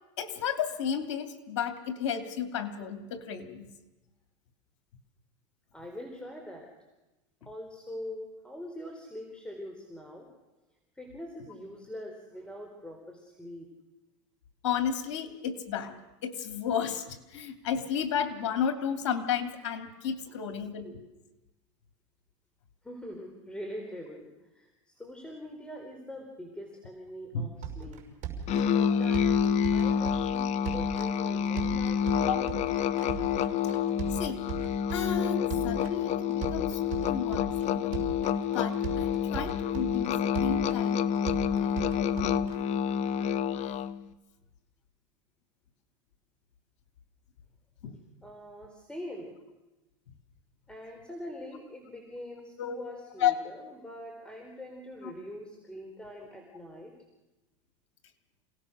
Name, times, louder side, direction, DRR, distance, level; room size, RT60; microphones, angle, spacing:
voice 1, 0.2-3.7 14.6-15.9 16.2-21.0 27.3-27.5 32.2-32.4 34.1-34.5 34.9-36.8 37.1-38.0 38.5-42.6 47.8-48.0 52.6-52.8 53.2-53.3 55.0-55.1, left 8 dB, 75° left, 7 dB, 2.9 m, -33 dB
voice 2, 5.7-6.7 7.4-10.3 11.0-13.7 20.3-20.4 22.8-28.0 28.7-32.6 48.2-49.4 50.7-56.9, equal, 5° left, 2 dB, 4.2 m, -43 dB
sound 1, 27.6-42.5, right 7 dB, 50° right, 6.0 m, -39 dB
Musical instrument, 28.5-44.0, left 8 dB, 45° left, 1.2 m, -28 dB
28.5 x 18.0 x 6.6 m, 1.0 s
supercardioid pair, 110°, 16 cm